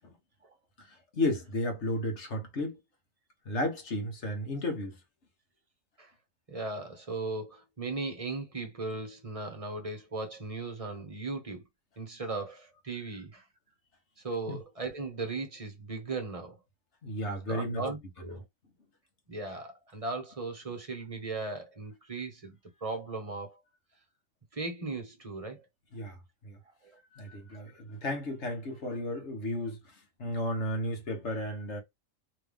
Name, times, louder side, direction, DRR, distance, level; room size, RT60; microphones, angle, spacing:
voice 1, 0.8-2.8 3.5-5.0 14.5-14.6 17.0-17.8 25.9-26.2 26.4-26.6 27.1-31.8, left 1 dB, 60° left, 1.6 m, -33 dB
voice 2, 6.5-11.6 12.0-13.4 14.2-16.6 17.5-18.4 19.3-23.6 24.5-25.7 26.8-27.0 27.5-27.7, right 3 dB, 30° right, 1.2 m, -37 dB
3.5 x 3.4 x 3.5 m
omnidirectional pair, 1.4 m